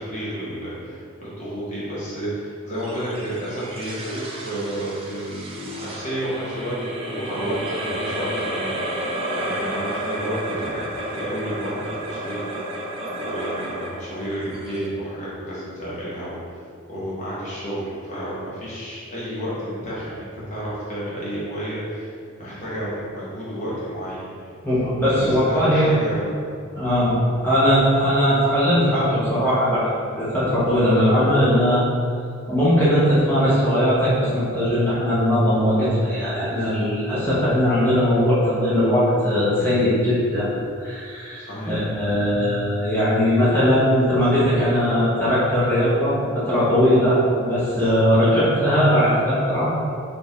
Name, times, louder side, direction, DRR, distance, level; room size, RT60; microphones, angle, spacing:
voice 1, 0.0-10.8 11.1-16.4 16.9-24.2 25.1-26.4 41.3-41.8, equal, 35° left, -9 dB, 1.0 m, -31 dB
sound 1, 2.8-15.4, right 1 dB, 25° right, 0.5 m, -31 dB
voice 2, 24.6-25.9 26.7-27.2 27.4-31.8 32.5-40.5 40.8-47.2 47.5-49.7, equal, 10° left, -10 dB, 0.9 m, -19 dB
4.2 x 3.4 x 3.4 m, 2.3 s
head